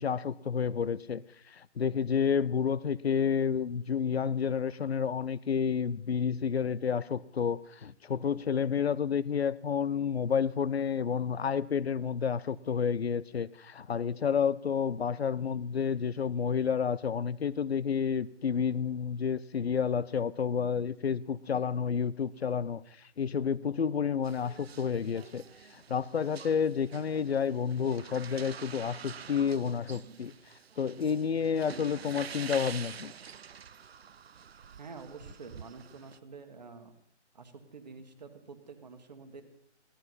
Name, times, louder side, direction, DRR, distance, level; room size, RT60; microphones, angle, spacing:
voice 1, 0.0-22.8 23.2-25.4 25.7-30.3 30.8-33.1, left 7 dB, 60° left, 0.6 m, -30 dB
sound 1, 24.2-36.2, right 7 dB, 60° right, 0.5 m, -47 dB
voice 2, 34.8-36.9 37.3-39.4, right 4 dB, 35° right, 1.5 m, -48 dB
16.5 x 12.5 x 5.5 m
hypercardioid pair, 175°, 36 cm